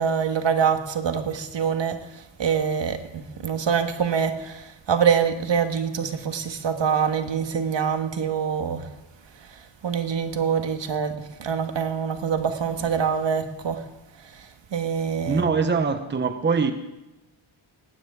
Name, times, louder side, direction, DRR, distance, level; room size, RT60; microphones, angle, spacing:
voice 1, 0.0-8.9 9.2-13.9 14.1-15.5, right 7 dB, 60° right, 7 dB, 1.6 m, -25 dB
voice 2, 15.2-16.7, right 5 dB, 20° right, 9 dB, 0.9 m, -23 dB
19.0 x 16.0 x 3.6 m, 0.99 s
wide cardioid pair, 105°, 49 cm